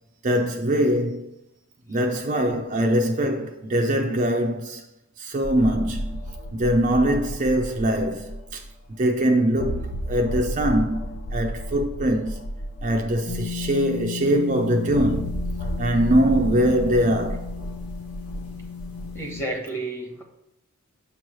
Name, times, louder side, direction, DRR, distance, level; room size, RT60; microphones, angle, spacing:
voice 1, 0.2-1.3 1.9-4.8 5.2-6.2 6.5-8.6 8.9-12.5 12.8-15.4 15.8-17.5, equal, 35° right, 0.5 m, -22 dB
sound 1, 5.4-8.7 9.0-9.1 9.5-14.1 14.9-19.2, equal, 70° left, 0.7 m, -32 dB
sound 2, 13.3-19.4, left 7 dB, 90° left, 1.2 m, -35 dB
voice 2, 19.1-20.2, right 2 dB, 10° left, 1.1 m, -31 dB
6.9 x 3.1 x 6.0 m
head